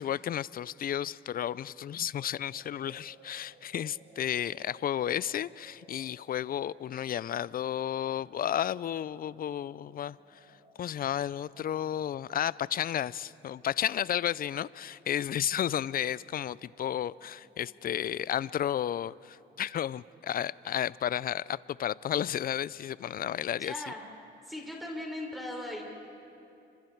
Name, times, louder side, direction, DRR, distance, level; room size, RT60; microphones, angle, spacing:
voice 1, 0.0-10.4 10.8-23.7, left 10 dB, 45° left, 21 dB, 0.5 m, -32 dB
sound 1, 2.1-21.3, right 2 dB, 40° right, 4.0 m, -62 dB
voice 2, 23.6-24.0 24.4-25.8, left 1 dB, ahead, -2 dB, 4.9 m, -38 dB
30.0 x 25.5 x 4.6 m, 2.7 s
cardioid pair, 90°, 20 cm